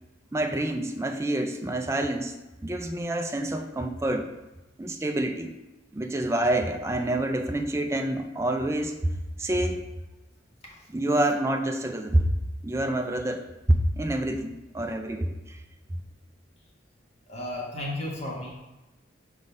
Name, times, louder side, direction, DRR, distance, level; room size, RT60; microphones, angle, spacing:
voice 1, 0.3-2.4 2.6-4.3 4.8-5.6 5.9-9.1 9.4-9.8 10.9-12.4 12.6-15.6, right 1 dB, 15° right, 4 dB, 0.4 m, -27 dB
voice 2, 17.3-18.5, left 1 dB, 35° left, -4 dB, 1.3 m, -33 dB
4.8 x 3.9 x 5.3 m, 1.0 s
head